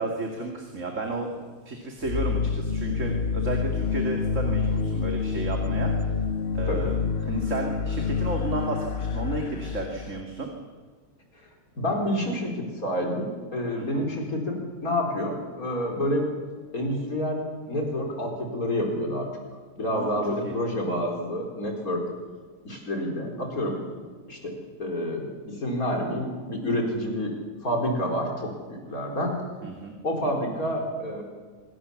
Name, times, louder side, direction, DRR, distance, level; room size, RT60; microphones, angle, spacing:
voice 1, 0.0-6.1 6.5-10.5 13.7-14.0 19.9-20.6 29.6-30.0, right 2 dB, 55° right, 2 dB, 2.8 m, -33 dB
sound 1, 2.0-10.2, left 5 dB, 50° left, 1.0 m, -27 dB
voice 2, 11.8-16.3 16.7-19.3 19.8-22.0 22.6-23.8 24.3-27.3 27.6-29.3 30.0-31.2, equal, 70° left, 1 dB, 4.9 m, -28 dB
25.5 x 22.0 x 7.1 m, 1.5 s
omnidirectional pair, 1.6 m